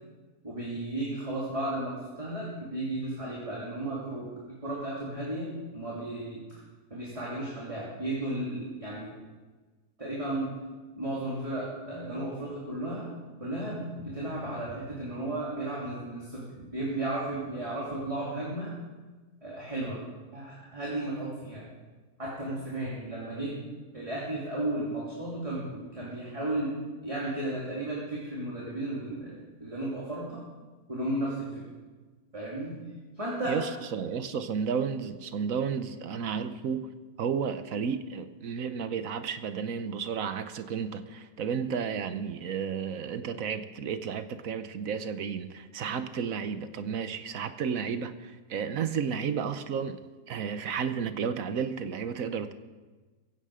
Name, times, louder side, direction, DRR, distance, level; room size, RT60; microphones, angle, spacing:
voice 1, 0.4-6.4 6.9-9.1 10.0-10.6 11.0-13.1 13.4-18.7 19.4-20.0 20.3-21.7 22.2-23.6 23.9-30.4 30.9-31.6 32.3-32.8 33.1-33.8, right 1 dB, 20° right, 3.2 m, -34 dB
voice 2, 33.5-36.9 37.2-50.0 50.3-52.5, right 6 dB, 60° right, 1.2 m, -32 dB
17.0 x 16.0 x 5.0 m
omnidirectional pair, 1.7 m